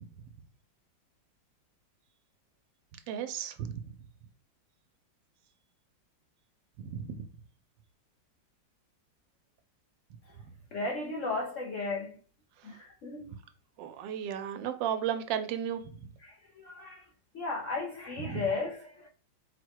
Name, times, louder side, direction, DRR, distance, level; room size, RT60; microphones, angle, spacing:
voice 1, 3.1-3.8 6.8-7.2 13.8-15.9 18.3-18.5, right 9 dB, 80° right, 1.3 m, -34 dB
voice 2, 10.7-12.2 12.6-13.3 16.2-17.0 17.3-19.1, left 3 dB, 65° left, 0.8 m, -35 dB
4.4 x 2.2 x 4.5 m
omnidirectional pair, 2.0 m